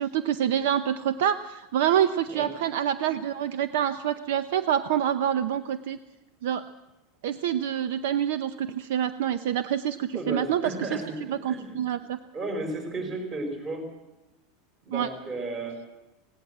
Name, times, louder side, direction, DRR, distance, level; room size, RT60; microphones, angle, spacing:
voice 1, 0.0-6.0 6.4-6.6 7.2-10.9 11.3-12.2 14.9-15.1, right 10 dB, 65° right, 12 dB, 0.7 m, -26 dB
voice 2, 10.1-11.8 12.3-13.8 14.8-15.8, right 2 dB, 25° right, 5 dB, 4.4 m, -33 dB
19.5 x 17.5 x 7.9 m, 0.98 s
supercardioid pair, 175°, 0 cm